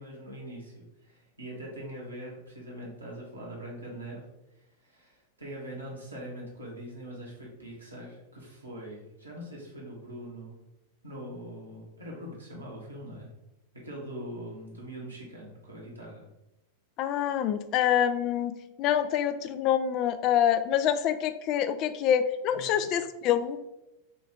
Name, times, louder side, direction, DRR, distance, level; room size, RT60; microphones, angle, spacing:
voice 1, 0.0-4.2 4.8-10.6 11.0-13.3 13.8-16.3 22.5-22.8, right 1 dB, 80° right, -4 dB, 1.4 m, -42 dB
voice 2, 17.0-23.6, left 9 dB, 40° left, 11 dB, 0.3 m, -26 dB
5.6 x 2.6 x 3.6 m, 0.94 s
figure-of-eight pair, 90°, 0 cm